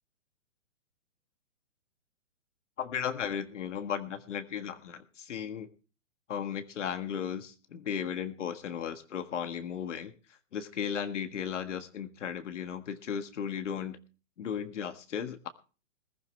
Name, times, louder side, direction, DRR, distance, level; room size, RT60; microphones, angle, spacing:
voice 1, 2.8-5.7 6.3-10.1 10.5-14.0 14.4-15.5, left 8 dB, 70° left, 9 dB, 1.6 m, -35 dB
21.0 x 11.5 x 3.3 m, 0.35 s
hypercardioid pair, 150°, 37 cm